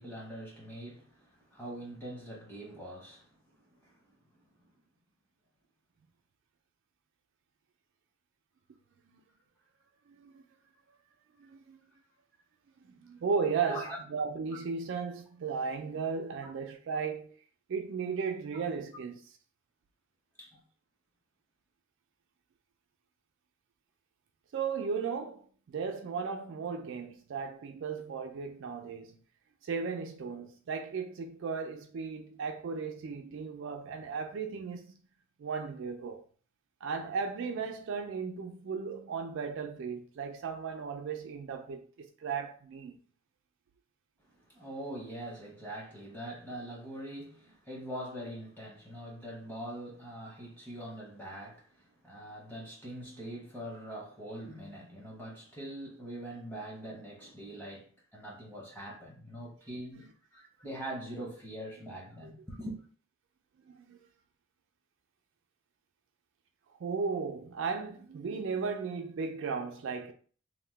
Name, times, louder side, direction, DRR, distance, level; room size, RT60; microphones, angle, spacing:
voice 1, 0.0-3.3 3.8-3.9 13.6-14.0 16.4-16.5 20.4-20.6 44.5-60.1 60.3-62.8, right 1 dB, 10° left, 0.9 m, -43 dB
voice 2, 10.1-10.4 11.4-11.8 13.0-17.3 17.7-19.2 24.5-29.2 29.6-34.9 35.4-36.2 36.8-43.0 62.2-62.3 63.7-64.0 66.8-70.1, right 5 dB, 55° right, 0.3 m, -36 dB
2.8 x 2.1 x 3.2 m
head